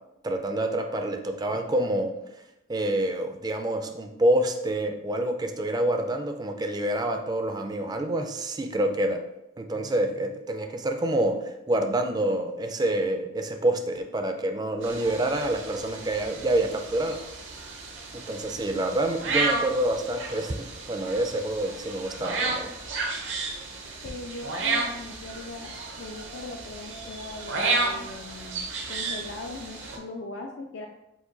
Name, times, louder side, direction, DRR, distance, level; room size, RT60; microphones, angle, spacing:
voice 1, 0.2-2.2 2.7-9.2 9.6-17.2 18.1-22.7, right 1 dB, 20° right, 5 dB, 0.3 m, -27 dB
sound 1, 14.8-30.0, right 3 dB, 75° right, 0.8 m, -32 dB
voice 2, 24.0-30.9, left 2 dB, 65° left, 2 dB, 0.4 m, -40 dB
4.8 x 2.2 x 3.8 m, 0.87 s
head